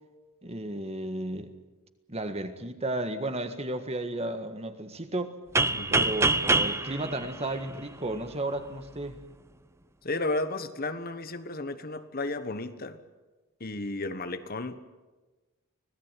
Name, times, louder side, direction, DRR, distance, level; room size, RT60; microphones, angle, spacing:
voice 1, 0.4-1.5 2.1-5.3 5.9-9.2, right 1 dB, 30° right, 8 dB, 1.7 m, -33 dB
sound 1, 5.6-8.3, right 2 dB, 10° right, 0.7 m, -26 dB
voice 2, 5.7-6.0 10.0-13.0 13.6-14.8, left 2 dB, 45° left, 10 dB, 1.4 m, -33 dB
25.0 x 17.5 x 9.2 m, 1.2 s
head